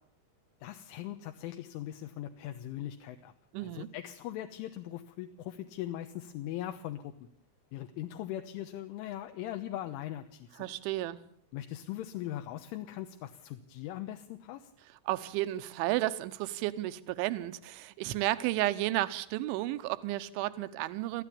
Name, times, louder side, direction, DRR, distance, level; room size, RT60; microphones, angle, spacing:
voice 1, 0.6-3.3 3.6-7.1 7.7-10.7 11.5-14.7, left 13 dB, 80° left, 3.5 m, -40 dB
voice 2, 3.5-3.9 10.6-11.2 15.1-21.2, right 16 dB, 75° right, 3.2 m, -32 dB
25.5 x 15.0 x 8.6 m
omnidirectional pair, 5.7 m